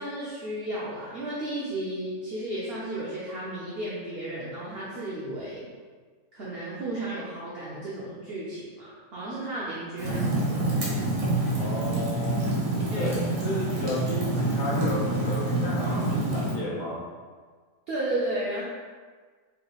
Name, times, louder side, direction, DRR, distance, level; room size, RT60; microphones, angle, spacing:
voice 1, 0.0-5.7 6.3-10.6 12.9-13.1 17.9-18.6, right 1 dB, 55° right, -7 dB, 0.8 m, -33 dB
Fire, 10.0-16.5, right 2 dB, 85° right, 1.5 m, -27 dB
voice 2, 11.6-12.5 12.9-17.1, left 2 dB, 70° left, -5 dB, 1.4 m, -33 dB
4.7 x 3.2 x 2.3 m, 1.5 s
omnidirectional pair, 1.4 m